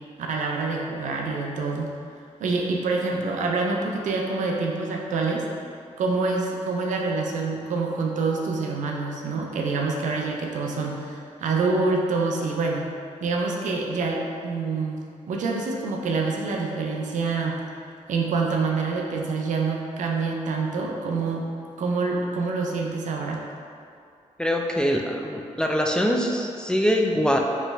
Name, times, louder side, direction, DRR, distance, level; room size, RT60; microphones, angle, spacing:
voice 1, 0.3-1.9 2.4-5.5 6.0-12.9 13.2-15.0 15.3-17.6 18.1-21.5 21.8-23.4, right 3 dB, 80° right, 0 dB, 0.5 m, -26 dB
voice 2, 24.4-27.4, equal, 5° left, 1 dB, 0.3 m, -23 dB
3.2 x 3.0 x 3.3 m, 2.4 s
cardioid pair, 75°, 13 cm